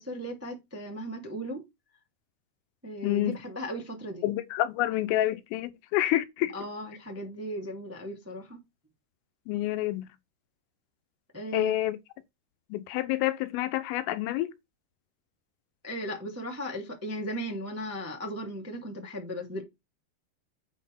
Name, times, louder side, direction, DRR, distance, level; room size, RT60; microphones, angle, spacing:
voice 1, 0.0-1.6 2.8-4.3 6.5-8.6 11.3-11.7 15.8-19.6, equal, 5° right, 1.1 m, -36 dB
voice 2, 3.0-3.3 4.2-6.5 9.5-10.1 11.5-12.0 12.7-14.5, left 15 dB, 80° left, 3.4 m, -28 dB
9.2 x 4.3 x 5.4 m
omnidirectional pair, 5.8 m